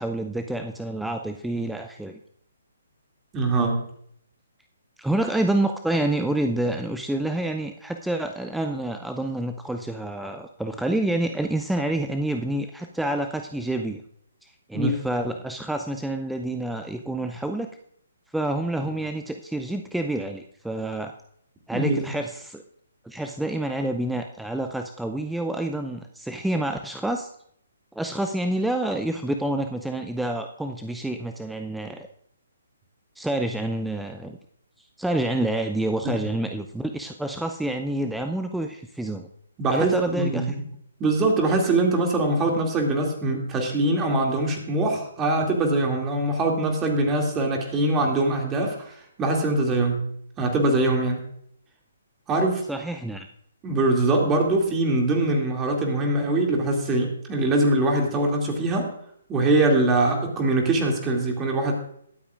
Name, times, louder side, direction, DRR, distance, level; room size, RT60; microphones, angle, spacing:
voice 1, 0.0-2.2 5.0-14.0 14.4-17.7 18.3-21.1 21.7-22.6 23.0-27.3 27.9-32.1 33.2-34.4 35.0-39.3 39.7-40.6 52.7-53.3, right 1 dB, 5° right, 5 dB, 0.5 m, -28 dB
voice 2, 3.3-3.8 14.7-15.0 21.7-22.1 36.0-36.2 39.6-40.6 41.0-50.0 50.4-51.2 52.3-52.6 53.6-58.9 59.3-61.7, right 2 dB, 20° right, 1 dB, 2.4 m, -23 dB
21.5 x 8.5 x 2.5 m, 0.69 s
figure-of-eight pair, 135°, 0 cm